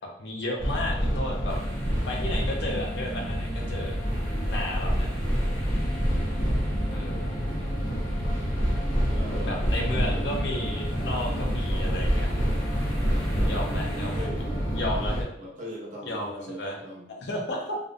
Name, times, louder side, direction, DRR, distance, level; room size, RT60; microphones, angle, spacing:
voice 1, 0.2-1.6 2.1-4.0 4.5-5.1 6.8-7.3 9.4-12.4 13.5-14.3 14.7-15.3 16.1-16.8 17.1-17.8, left 1 dB, 60° left, 0 dB, 0.5 m, -33 dB
sound 1, 0.6-15.2, equal, 75° left, 0.9 m, -27 dB
sound 2, 1.5-14.3, equal, 5° left, 0.7 m, -48 dB
voice 2, 9.1-9.7 13.1-14.5 15.4-17.1, equal, 40° right, -4 dB, 0.6 m, -41 dB
2.4 x 2.1 x 2.5 m, 0.72 s
head